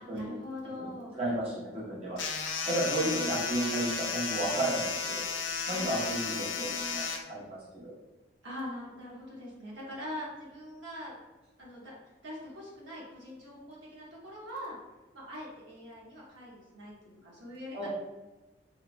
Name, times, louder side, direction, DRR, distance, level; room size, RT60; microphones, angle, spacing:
voice 1, 0.0-1.1 2.9-3.3 5.7-6.2 6.5-7.1 8.4-11.1 11.6-11.9 12.2-14.8 15.1-17.9, left 1 dB, 75° right, -5 dB, 0.9 m, -42 dB
voice 2, 0.8-2.2 2.7-5.2 5.7-6.7 6.9-7.9 17.7-17.9, right 1 dB, 30° right, -7 dB, 0.6 m, -33 dB
sound 1, 2.2-7.2, left 5 dB, 75° left, 0.4 m, -34 dB
3.0 x 2.1 x 2.4 m, 1.1 s
head